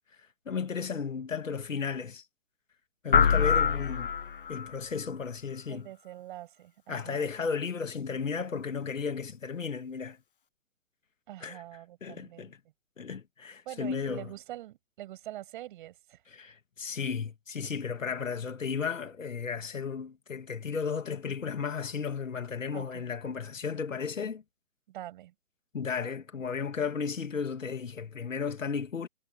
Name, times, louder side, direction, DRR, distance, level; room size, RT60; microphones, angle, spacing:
voice 1, 0.5-2.2 3.0-4.1 4.5-5.9 6.9-10.2 11.4-11.6 12.0-12.6 13.0-14.3 16.3-24.4 25.7-29.1, left 6 dB, 65° left, 2.7 m, -34 dB
sound 1, 3.1-4.7, left 7 dB, 40° left, 0.4 m, -24 dB
voice 2, 5.7-7.3 11.3-12.5 13.7-16.2 22.7-23.1 24.9-25.3, right 14 dB, 35° right, 7.9 m, -44 dB
figure-of-eight pair, 135°, 42 cm